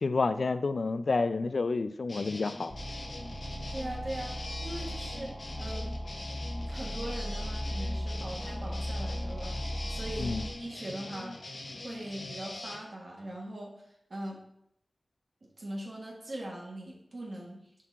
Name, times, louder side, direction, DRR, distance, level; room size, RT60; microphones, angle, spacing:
voice 1, 0.0-2.7 10.2-10.5, left 3 dB, 70° left, 12 dB, 0.3 m, -29 dB
sound 1, 2.1-12.8, left 2 dB, 55° left, 0.9 m, -43 dB
sound 2, 2.7-10.5, equal, 25° left, 1.0 m, -37 dB
voice 2, 3.7-4.3 4.6-5.3 5.6-5.9 6.7-9.6 9.9-10.3 10.6-11.4 11.8-13.7 14.1-14.4 15.4-17.6, right 1 dB, 55° right, -2 dB, 1.5 m, -40 dB
5.4 x 5.0 x 4.1 m, 0.77 s
wide cardioid pair, 85°, 0 cm